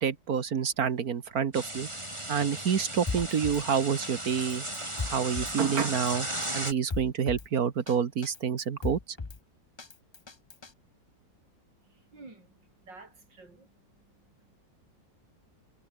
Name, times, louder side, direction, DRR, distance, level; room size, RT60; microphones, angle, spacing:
voice 1, 0.0-1.9 2.3-4.7 5.1-6.3 6.5-9.0, right 7 dB, 55° right, 1.7 m, -28 dB
sound 1, 1.5-6.7, right 1 dB, 15° right, 4.6 m, -36 dB
Drum kit, 3.1-3.6 4.0-4.1 4.4-5.6 5.9-6.1 6.4-7.5 7.9-8.0 8.2-9.4 9.8-10.7, left 3 dB, 25° left, 0.6 m, -37 dB
voice 2, 11.8-14.6, right 3 dB, 80° right, 5.6 m, -53 dB
omnidirectional pair, 1.9 m